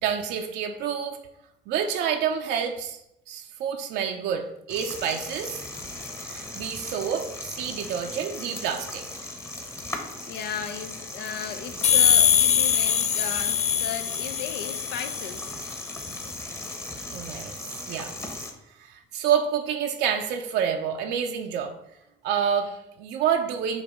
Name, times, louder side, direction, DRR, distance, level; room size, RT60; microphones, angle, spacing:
voice 1, 0.0-1.2 1.7-3.0 3.3-5.6 6.2-9.1 17.1-17.6 17.9-18.1 18.8-21.7 22.2-23.8, right 8 dB, 80° right, 0.6 m, -28 dB
sound 1, 4.7-18.5, left 2 dB, 15° left, 0.9 m, -37 dB
voice 2, 10.3-15.6, left 8 dB, 85° left, 0.6 m, -36 dB
sound 2, 11.8-15.4, left 9 dB, 40° left, 0.5 m, -22 dB
7.2 x 2.6 x 5.0 m
cardioid pair, 110°, 17 cm